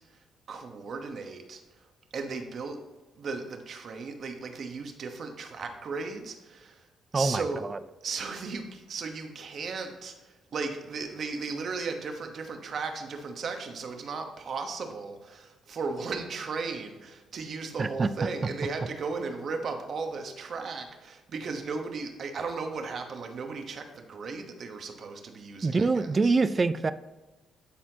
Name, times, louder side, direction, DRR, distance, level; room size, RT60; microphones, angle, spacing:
voice 1, 0.5-1.6 2.1-2.8 3.2-6.9 7.1-7.6 8.0-26.3, right 4 dB, 55° right, 5 dB, 1.1 m, -36 dB
voice 2, 7.1-7.8 17.8-18.1 25.6-26.9, right 3 dB, 30° right, 14 dB, 0.4 m, -25 dB
11.5 x 4.3 x 2.8 m, 1.2 s
cardioid pair, 90°, 0 cm